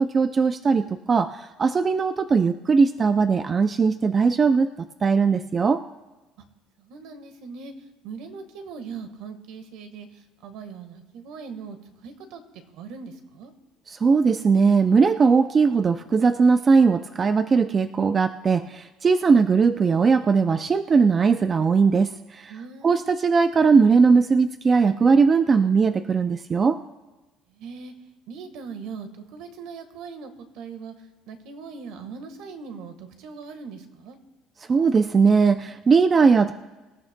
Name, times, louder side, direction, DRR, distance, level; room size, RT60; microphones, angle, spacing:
voice 1, 0.0-4.7 5.0-5.8 13.9-22.5 22.8-26.8 34.7-36.5, right 5 dB, 25° right, 10 dB, 0.3 m, -19 dB
voice 2, 6.8-13.5 22.5-23.1 27.5-27.9 28.3-34.2, right 5 dB, 65° right, 8 dB, 1.4 m, -40 dB
25.0 x 13.0 x 2.2 m, 1.1 s
cardioid pair, 160°, 0 cm